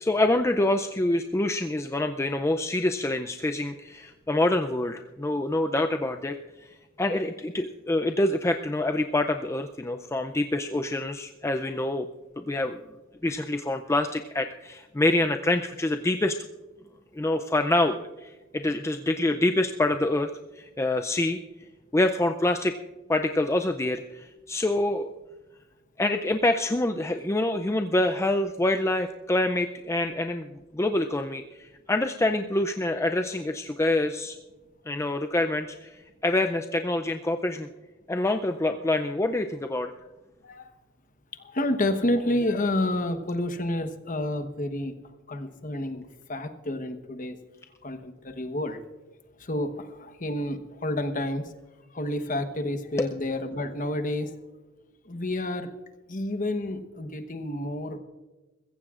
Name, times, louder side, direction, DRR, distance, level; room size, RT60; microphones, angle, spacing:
voice 1, 0.0-6.4 7.0-12.1 12.4-12.8 13.2-16.4 17.1-20.3 20.6-21.4 21.9-22.7 23.1-25.1 26.0-30.5 30.7-34.4 34.9-37.7 38.1-39.9 53.0-53.1, left 1 dB, 15° left, 6 dB, 0.4 m, -26 dB
voice 2, 41.4-45.0 45.3-47.4 47.8-48.8 49.4-51.4 51.9-54.3 55.0-55.7 56.1-58.0, left 1 dB, 40° left, 7 dB, 1.1 m, -29 dB
22.5 x 15.0 x 2.5 m, 1.2 s
head